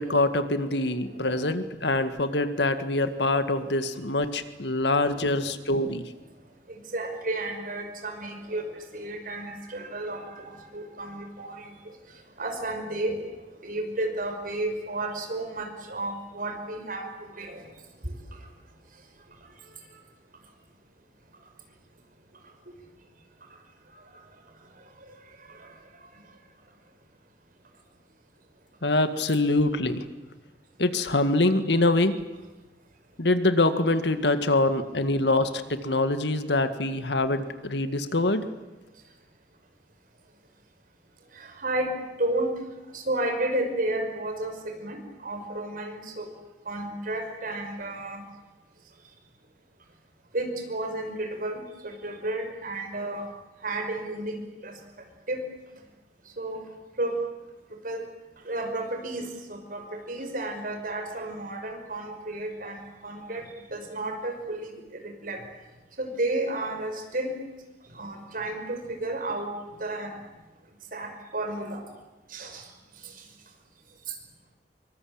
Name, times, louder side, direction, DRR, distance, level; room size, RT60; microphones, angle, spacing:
voice 1, 0.0-6.1 28.8-30.1 30.8-32.2 33.2-38.4, left 2 dB, 70° left, 10 dB, 1.9 m, -24 dB
voice 2, 0.7-1.5 2.6-2.7 5.1-5.5 6.7-11.7 12.4-13.2 13.6-17.6 18.0-18.4 23.9-24.0 25.0-25.1 25.4-25.7 41.3-42.5 42.9-46.3 46.7-48.2 50.3-53.3 53.6-54.8 55.3-55.5 56.4-56.6 57.0-57.2 57.7-58.1 58.4-65.4 66.0-67.4 67.9-70.2 70.9-71.8 72.3-72.7 73.0-73.1, right 2 dB, 50° right, 5 dB, 5.5 m, -32 dB
24.5 x 24.0 x 8.9 m, 1.1 s
head